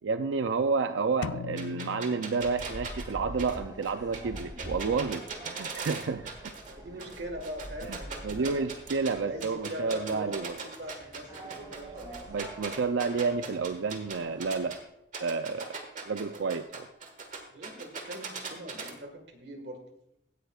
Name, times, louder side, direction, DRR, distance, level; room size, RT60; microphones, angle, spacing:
voice 1, 0.0-6.5 7.9-8.0 8.2-10.6 12.3-14.8 15.2-15.7 16.1-16.9, right 4 dB, 90° right, 9 dB, 0.5 m, -30 dB
sound 1, 1.2-3.1, left 7 dB, 85° left, 0.3 m, -40 dB
sound 2, 1.6-6.7 7.0-9.1 9.4-14.8 15.1-18.9, right 5 dB, 45° right, 1.5 m, -39 dB
sound 3, 2.4-14.8, right 1 dB, 25° right, 2.7 m, -46 dB
voice 2, 6.7-8.7 9.2-12.2 16.3-16.4 17.5-19.8, equal, 65° right, 5 dB, 1.7 m, -42 dB
16.0 x 10.5 x 2.4 m, 0.82 s
head